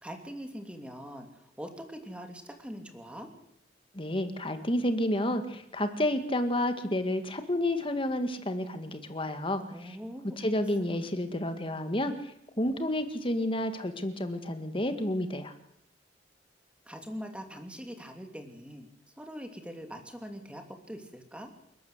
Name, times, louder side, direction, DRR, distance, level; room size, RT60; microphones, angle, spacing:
voice 1, 0.0-3.3 9.7-10.5 16.8-18.9 19.2-21.5, equal, 5° right, 4 dB, 3.0 m, -43 dB
voice 2, 3.9-10.0 10.4-15.5, left 1 dB, 30° left, 8 dB, 1.9 m, -30 dB
28.5 x 12.5 x 8.1 m, 0.78 s
head